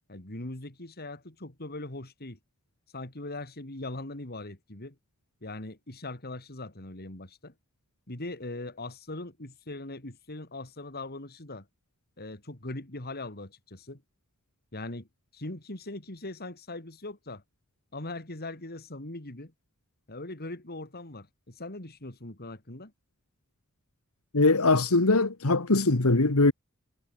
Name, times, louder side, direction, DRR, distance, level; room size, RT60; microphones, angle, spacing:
voice 1, 0.1-2.4 2.9-5.0 5.4-7.5 8.1-11.7 12.2-14.0 14.7-15.1 15.3-17.4 17.9-19.5 20.1-22.9, left 2 dB, 45° left, 3.4 m, -40 dB
voice 2, 24.3-26.5, left 2 dB, 80° left, 1.7 m, -22 dB
head